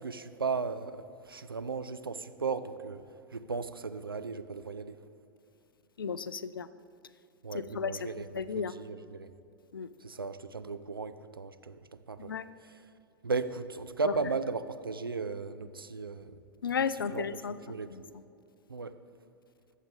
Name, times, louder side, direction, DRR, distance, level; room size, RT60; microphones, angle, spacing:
voice 1, 0.0-3.0 3.3-5.0 7.4-9.3 10.0-11.8 12.1-12.4 12.6-12.8 13.2-16.3 17.1-17.3 17.7-17.9 18.7-18.9, right 4 dB, 80° right, 11 dB, 0.5 m, -36 dB
voice 2, 6.0-6.7 7.5-7.9 8.3-8.7 9.7-9.9 12.2-12.4 16.6-18.0, left 6 dB, 75° left, 15 dB, 0.5 m, -34 dB
22.0 x 7.4 x 3.5 m, 2.7 s
figure-of-eight pair, 95°, 12 cm